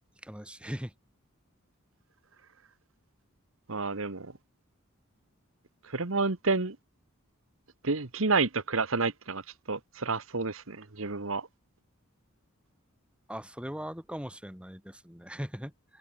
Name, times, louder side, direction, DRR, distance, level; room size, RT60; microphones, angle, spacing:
voice 1, 0.2-0.9 13.3-16.0, equal, 5° right, 6.4 m, -40 dB
voice 2, 3.7-4.3 5.9-6.8 7.8-9.4 9.7-11.5, right 3 dB, 65° right, 1.4 m, -29 dB
open air
head